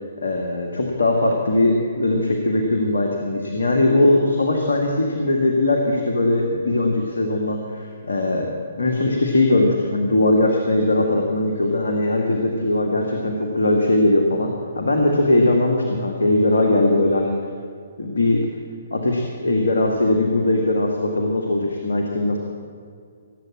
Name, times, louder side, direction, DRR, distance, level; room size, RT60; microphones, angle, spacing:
voice 1, 0.2-8.5 8.8-17.3 18.0-18.4 18.9-22.4, left 2 dB, 70° left, 1 dB, 1.8 m, -20 dB
18.0 x 8.3 x 8.6 m, 2.2 s
figure-of-eight pair, 130°, 0 cm